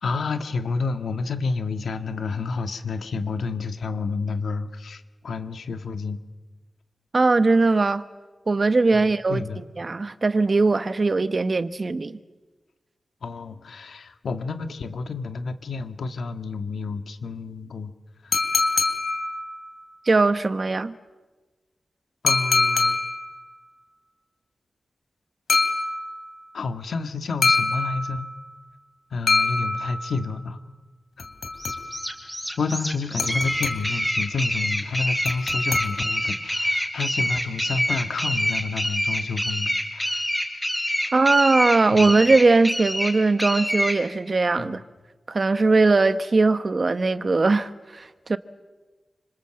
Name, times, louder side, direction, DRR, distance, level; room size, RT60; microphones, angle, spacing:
voice 1, 0.0-6.2 8.9-9.6 13.2-17.9 18.2-18.4 22.2-23.0 26.5-28.3 29.1-30.6 32.6-40.2 41.0-41.1 41.9-42.1 44.6-44.8, left 4 dB, 90° left, 1.7 m, -30 dB
voice 2, 7.1-8.0 8.5-9.4 9.8-12.2 20.1-20.9 41.1-44.8 45.3-48.4, right 3 dB, 40° right, 1.1 m, -20 dB
sound 1, 18.3-19.8 22.3-23.4 25.5-26.4 27.4-28.4 29.3-30.3 31.2-32.2 33.2-34.1 35.2-36.3, left 3 dB, 70° left, 3.2 m, -25 dB
sound 2, 31.6-44.0, equal, 5° left, 4.9 m, -26 dB
28.5 x 26.5 x 7.8 m
wide cardioid pair, 115°, 0 cm